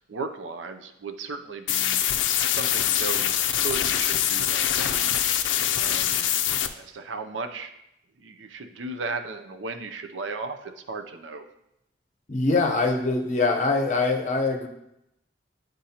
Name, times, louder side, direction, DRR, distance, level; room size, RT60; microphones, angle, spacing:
voice 1, 0.1-2.0 2.5-3.4 3.6-5.0 5.8-6.3 6.7-7.7 8.2-11.5, right 4 dB, 85° right, 7 dB, 0.6 m, -35 dB
sound 1, 1.7-6.7, left 10 dB, 85° left, 0.4 m, -24 dB
voice 2, 12.3-14.7, left 3 dB, 40° left, 3 dB, 0.7 m, -23 dB
9.9 x 3.7 x 2.8 m, 0.84 s
head